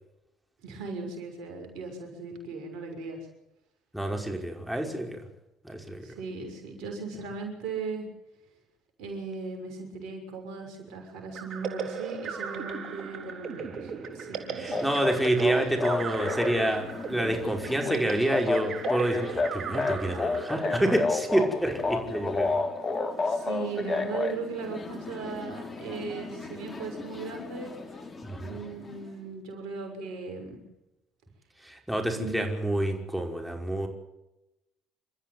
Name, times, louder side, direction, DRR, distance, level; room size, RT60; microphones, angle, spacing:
voice 1, 0.6-3.2 6.0-8.1 9.0-14.9 23.3-27.7 28.3-30.6 32.1-32.3, right 4 dB, 70° right, 3 dB, 6.4 m, -38 dB
voice 2, 3.9-5.2 5.6-6.1 14.6-22.6 28.2-28.6 31.6-33.9, right 1 dB, ahead, 2 dB, 5.4 m, -28 dB
sound 1, 11.3-21.9, right 6 dB, 55° right, 3.6 m, -38 dB
sound 2, 14.7-29.0, left 3 dB, 35° left, 3.5 m, -32 dB
28.0 x 14.0 x 8.1 m, 0.94 s
hypercardioid pair, 60°, 0 cm